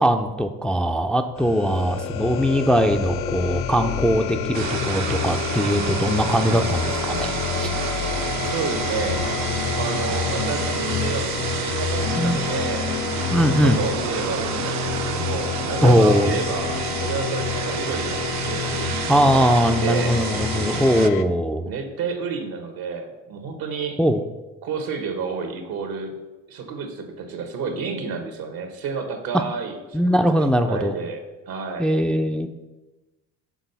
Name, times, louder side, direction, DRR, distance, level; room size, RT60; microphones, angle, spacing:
voice 1, 0.0-7.7 12.1-12.4 13.3-13.8 15.8-16.4 19.1-21.7 24.0-24.2 29.9-30.9 31.8-32.5, equal, 5° left, 5 dB, 0.4 m, -20 dB
sound 1, 1.3-21.2, left 8 dB, 75° left, 0.5 m, -28 dB
sound 2, 4.5-21.1, right 9 dB, 50° right, 0.5 m, -30 dB
voice 2, 8.4-9.3 9.8-12.9 13.2-19.5 19.8-20.2 21.6-24.0 24.6-26.2 26.5-31.9, right 5 dB, 75° right, 6 dB, 1.1 m, -30 dB
6.2 x 3.8 x 5.4 m, 1.1 s
supercardioid pair, 65°, 36 cm